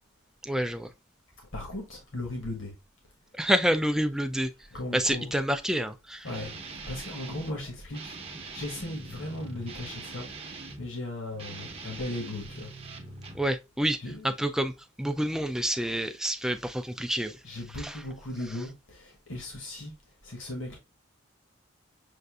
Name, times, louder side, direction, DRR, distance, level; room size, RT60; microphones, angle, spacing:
voice 1, 0.4-0.9 3.3-4.5 4.9-6.3 13.3-14.0 14.2-14.7 15.0-17.4 17.8-18.0, equal, 5° right, 0.3 m, -28 dB
voice 2, 1.5-2.7 4.7-5.4 6.2-8.2 8.5-12.7 14.0-14.5 17.4-19.9 20.2-20.8, left 1 dB, 65° left, 1.2 m, -37 dB
Guitar, 6.2-7.6 7.9-10.9 11.3-13.5, right 3 dB, 30° right, 0.7 m, -42 dB
6.5 x 2.5 x 2.3 m
head